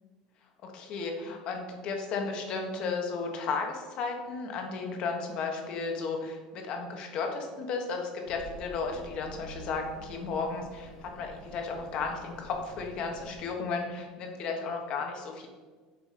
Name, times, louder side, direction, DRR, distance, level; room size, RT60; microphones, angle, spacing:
voice 1, 0.6-15.5, left 4 dB, 45° left, 3 dB, 1.3 m, -34 dB
Accelerating revving vroom, 8.3-13.3, equal, 85° left, 1.9 m, -49 dB
7.1 x 5.1 x 5.1 m, 1.4 s
cardioid pair, 165°, 2 cm